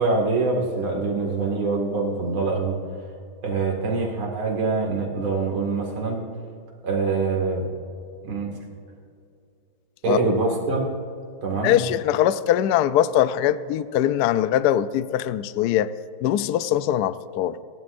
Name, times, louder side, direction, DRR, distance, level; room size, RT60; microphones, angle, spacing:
voice 1, 0.0-2.8 3.4-6.2 6.8-7.7 8.2-8.5 10.0-10.9 11.4-11.8, right 3 dB, 80° right, 0 dB, 2.9 m, -24 dB
voice 2, 11.6-15.9 16.2-17.6, left 11 dB, 90° left, 14 dB, 0.8 m, -22 dB
29.0 x 11.0 x 2.6 m, 2.4 s
omnidirectional pair, 2.3 m